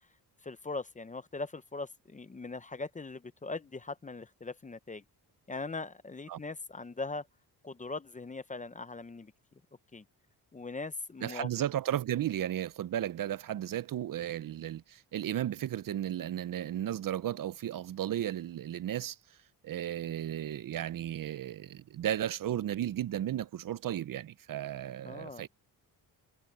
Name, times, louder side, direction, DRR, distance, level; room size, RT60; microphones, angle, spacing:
voice 1, 0.4-5.0 5.5-7.3 7.6-9.3 9.9-10.0 10.5-11.5 25.0-25.5, left 3 dB, 20° left, 0.7 m, -40 dB
voice 2, 11.2-19.2 19.6-25.5, right 11 dB, 55° right, 0.6 m, -34 dB
cardioid pair, 110°, 40 cm